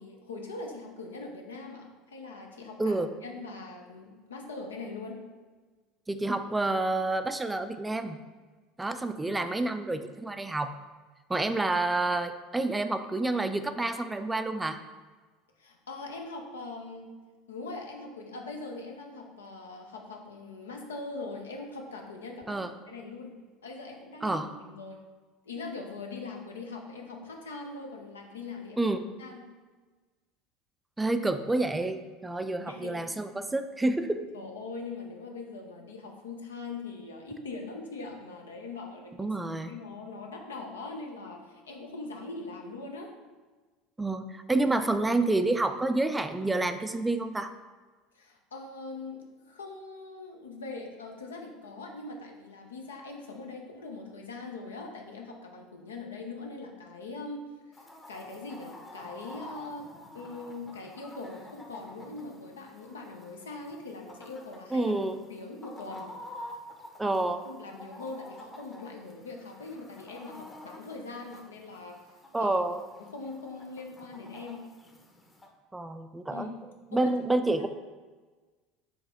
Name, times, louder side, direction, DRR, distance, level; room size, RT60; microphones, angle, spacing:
voice 1, 0.0-5.2 15.6-17.1 17.5-25.0 25.4-29.5 32.7-33.1 34.3-39.3 39.6-43.1 48.2-59.9 60.1-64.9 65.3-66.1 67.0-72.0 72.4-72.6 73.0-74.7 76.3-77.2 77.6-77.7, left 3 dB, 90° left, 1 dB, 0.6 m, -42 dB
voice 2, 2.8-3.1 6.1-8.2 8.8-10.7 11.3-14.8 22.5-22.7 24.2-24.5 28.8-29.1 31.0-34.2 39.2-39.7 44.0-47.5 64.7-65.2 67.0-67.4 72.3-72.8 75.7-76.5 76.9-77.7, right 2 dB, 10° right, 9 dB, 0.3 m, -28 dB
Chicken rooster, 57.7-75.5, left 1 dB, 20° left, 0.7 m, -49 dB
4.7 x 2.8 x 3.6 m, 1.4 s
hypercardioid pair, 80°, 0 cm